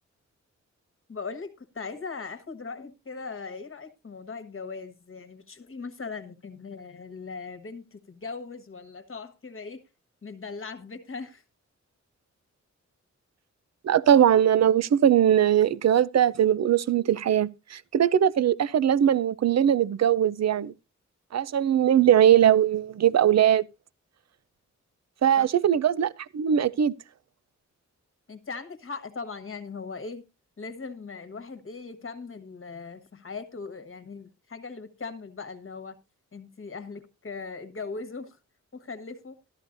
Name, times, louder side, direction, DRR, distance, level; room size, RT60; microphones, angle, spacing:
voice 1, 1.1-9.8 10.2-11.4 25.4-25.5 28.3-30.2 30.6-36.0 36.3-38.4 38.7-39.4, left 4 dB, 45° left, 1.3 m, -39 dB
voice 2, 13.8-20.7 21.3-23.6 25.2-26.9, right 10 dB, 65° right, 0.5 m, -21 dB
14.0 x 12.5 x 2.6 m
wide cardioid pair, 125°, 29 cm